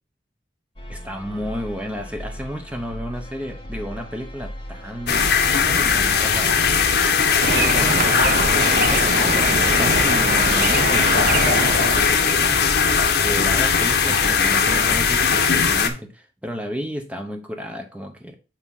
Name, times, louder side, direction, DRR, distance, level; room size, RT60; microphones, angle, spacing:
sound 1, 0.8-15.3, equal, 30° left, 1.2 m, -37 dB
voice 1, 0.9-5.3 5.7-6.7 7.5-18.3, equal, 5° right, 4 dB, 0.9 m, -32 dB
sound 2, 5.1-15.9, left 6 dB, 70° left, 0.9 m, -19 dB
sound 3, 7.4-12.3, right 4 dB, 50° right, 0.5 m, -24 dB
8.4 x 2.9 x 5.4 m, 0.34 s
head